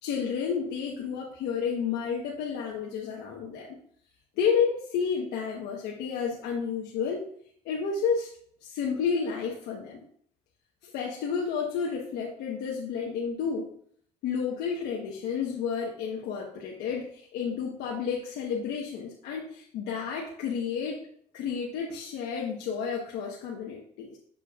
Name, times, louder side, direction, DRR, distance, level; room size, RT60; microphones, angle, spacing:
voice 1, 0.0-3.7 4.4-7.3 7.6-8.3 8.6-10.0 10.8-13.7 14.2-21.0 21.3-24.2, left 6 dB, 85° left, -2 dB, 1.1 m, -31 dB
7.1 x 6.9 x 2.4 m, 0.63 s
cardioid pair, 110°, 17 cm